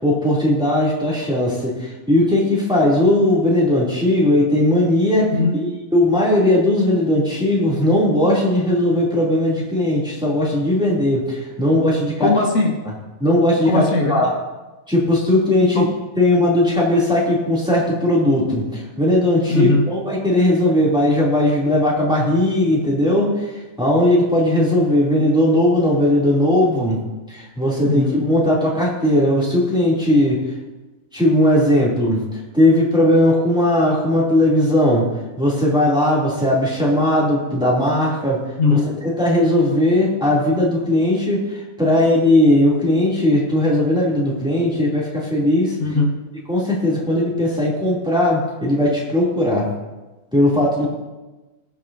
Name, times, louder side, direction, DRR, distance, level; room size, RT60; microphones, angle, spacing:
voice 1, 0.0-12.3 13.2-14.3 14.9-15.9 16.2-23.3 23.8-27.0 27.3-30.4 31.1-32.2 32.5-35.1 35.4-38.4 38.7-45.7 46.5-49.7 50.3-50.9, left 1 dB, 5° right, -6 dB, 3.2 m, -18 dB
voice 2, 12.2-12.7 13.7-14.2 19.5-19.9 27.8-28.2 38.6-38.9 45.8-46.1, left 3 dB, 65° left, -1 dB, 2.3 m, -18 dB
21.5 x 7.5 x 2.9 m, 1.1 s
omnidirectional pair, 1.6 m